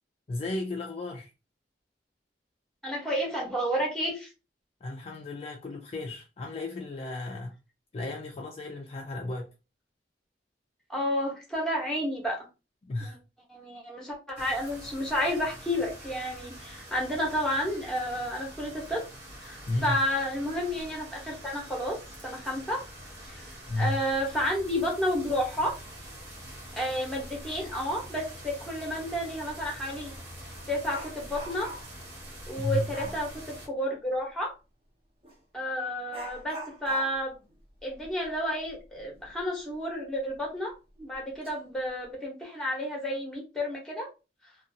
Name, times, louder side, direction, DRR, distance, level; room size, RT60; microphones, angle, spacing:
voice 1, 0.3-1.3 4.8-7.5 7.9-9.5 12.8-13.2 19.7-20.0 23.7-24.0 32.6-32.9, left 2 dB, 35° left, 0.3 m, -33 dB
voice 2, 2.8-4.3 10.9-12.5 13.0-13.2 13.5-19.0 19.4-22.0 22.2-22.8 23.3-23.4 23.8-25.8 26.8-30.1 30.7-31.7 32.5-34.5 35.5-37.4 37.8-44.1, equal, 5° left, 0.9 m, -31 dB
sound 1, 14.4-33.7, right 1 dB, 70° right, 0.8 m, -45 dB
Dog, 29.6-29.7 30.1-32.0 32.9-33.3 35.2-35.4 36.1-39.4 39.7-39.8 40.3-40.4 41.1-41.5 41.9-42.1, right 1 dB, 30° right, 0.8 m, -44 dB
2.6 x 2.3 x 2.6 m
head